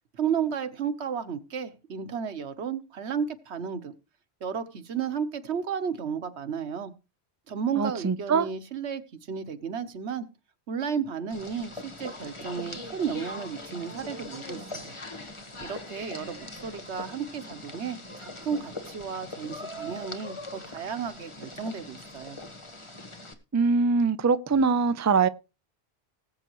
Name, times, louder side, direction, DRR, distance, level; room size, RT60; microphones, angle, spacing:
voice 1, 0.1-3.9 4.4-6.9 7.5-9.0 9.3-10.3 10.7-15.0 15.6-22.4, right 7 dB, 90° right, 1.4 m, -33 dB
voice 2, 7.8-8.5 23.5-25.3, right 4 dB, 25° right, 0.4 m, -23 dB
sound 1, 11.3-23.3, left 2 dB, 30° left, 1.4 m, -41 dB
19.0 x 8.0 x 3.1 m
omnidirectional pair, 1.1 m